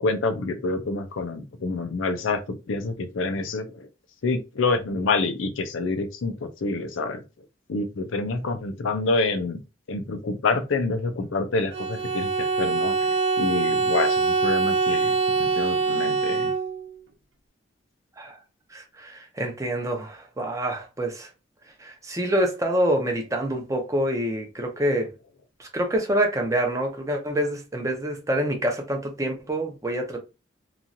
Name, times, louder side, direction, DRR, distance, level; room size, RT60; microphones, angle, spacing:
voice 1, 0.0-3.9 4.2-7.2 7.7-9.6 9.9-15.1 15.4-16.5, left 3 dB, 85° left, 0.5 m, -27 dB
Bowed string instrument, 11.7-17.0, right 4 dB, 60° right, 0.6 m, -24 dB
voice 2, 18.7-21.3 21.8-25.1 25.6-30.2, right 1 dB, 15° right, 0.6 m, -26 dB
3.0 x 2.4 x 2.6 m
head